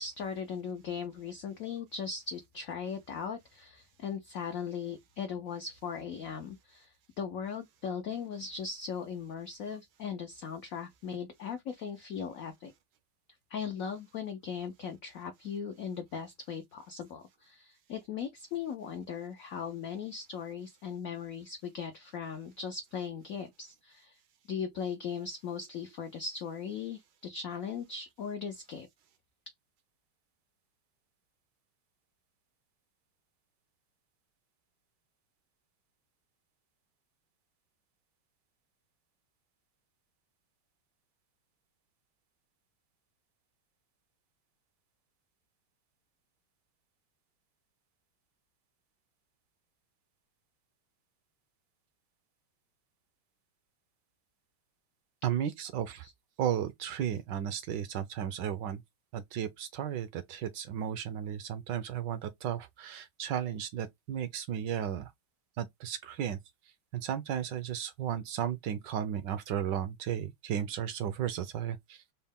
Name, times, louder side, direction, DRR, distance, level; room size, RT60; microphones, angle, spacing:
voice 1, 0.0-12.7 13.5-24.2 24.5-28.9 56.0-56.1, left 6 dB, 90° left, 0.7 m, -38 dB
voice 2, 55.2-56.1 56.4-58.8 59.1-65.1 65.6-66.4 66.9-72.0, right 9 dB, 75° right, 1.1 m, -34 dB
4.2 x 2.1 x 3.5 m
omnidirectional pair, 2.2 m